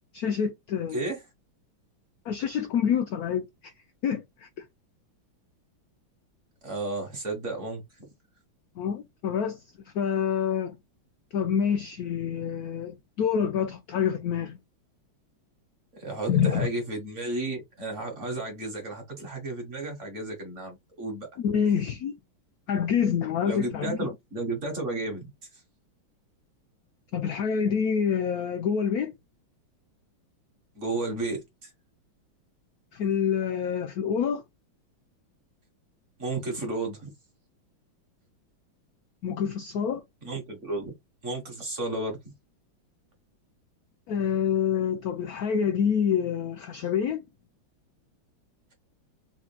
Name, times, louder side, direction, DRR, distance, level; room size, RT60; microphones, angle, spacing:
voice 1, 0.1-1.0 2.3-3.7 4.0-4.5 8.8-9.6 9.9-10.7 11.3-14.6 16.3-16.7 21.4-22.1 22.7-24.0 27.1-29.1 32.9-34.4 39.2-40.0 44.1-47.2, left 7 dB, 80° left, 0.8 m, -27 dB
voice 2, 6.6-8.1 15.9-21.3 23.4-25.6 30.7-31.7 36.2-37.1 40.2-40.9 41.2-42.2, right 2 dB, 40° right, 1.5 m, -33 dB
4.3 x 3.7 x 2.2 m
omnidirectional pair, 2.3 m